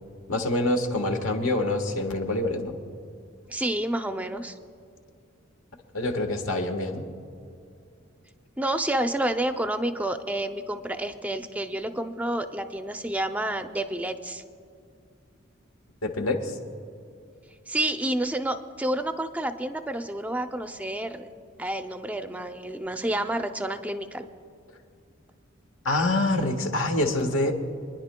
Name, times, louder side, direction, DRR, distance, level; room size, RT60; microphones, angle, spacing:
voice 1, 0.3-2.7 5.9-7.0 16.0-16.6 25.8-27.5, left 2 dB, 80° left, 4 dB, 1.3 m, -26 dB
voice 2, 3.5-4.6 8.6-14.4 17.7-21.3 21.6-24.3, right 1 dB, 5° right, 8 dB, 0.4 m, -29 dB
27.5 x 10.5 x 2.2 m, 2.5 s
head